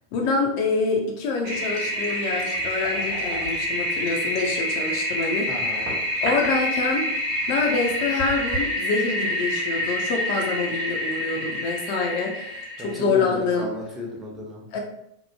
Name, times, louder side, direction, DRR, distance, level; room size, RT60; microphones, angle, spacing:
voice 1, 0.1-5.5 6.2-7.1 7.5-13.7 14.7-14.8, left 4 dB, 45° left, 1 dB, 0.4 m, -26 dB
Toilet flush, 1.4-13.0, left 1 dB, 45° right, 0.9 m, -27 dB
voice 2, 5.4-5.9 12.8-14.6, equal, 15° right, -2 dB, 0.6 m, -34 dB
2.9 x 2.0 x 2.2 m, 0.78 s
figure-of-eight pair, 90°, 0 cm